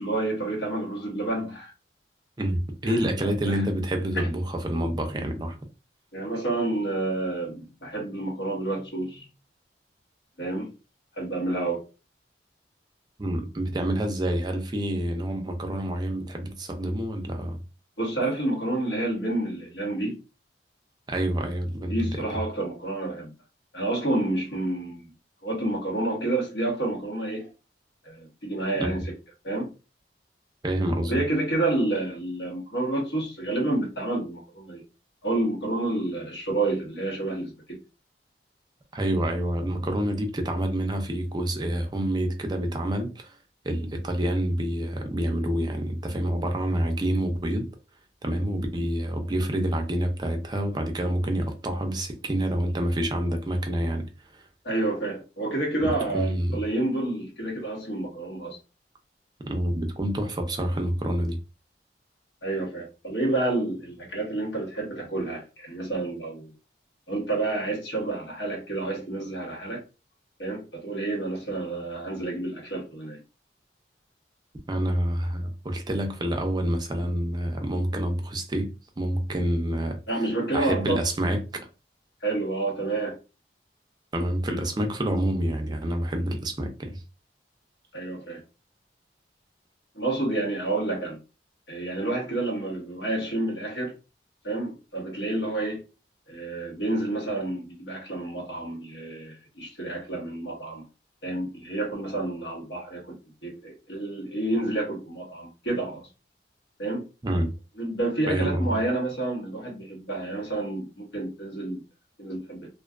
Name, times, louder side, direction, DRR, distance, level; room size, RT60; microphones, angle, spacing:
voice 1, 0.0-1.7 2.8-3.7 4.1-4.3 6.1-9.3 10.4-10.7 11.2-11.9 18.0-20.2 21.9-23.3 23.7-25.1 25.4-27.5 28.0-29.1 29.4-29.7 31.1-34.8 35.2-37.8 54.6-58.6 62.4-66.5 67.1-69.8 70.4-73.2 80.1-81.0 82.2-83.2 87.9-88.4 89.9-91.2 91.7-93.9 94.4-95.8 96.3-100.8 101.2-106.1 106.8-107.1 107.8-111.8 112.2-112.7, right 2 dB, 85° left, 1.2 m, -29 dB
voice 2, 2.4-5.6 13.2-17.6 21.1-22.1 28.8-28.9 30.6-31.1 38.9-43.3 43.6-47.7 48.2-54.1 55.8-56.6 59.4-61.4 74.7-78.7 79.0-80.0 80.5-81.4 84.1-87.0 107.2-107.5 108.3-108.8, right 1 dB, 25° right, 0.4 m, -27 dB
2.4 x 2.3 x 2.4 m
head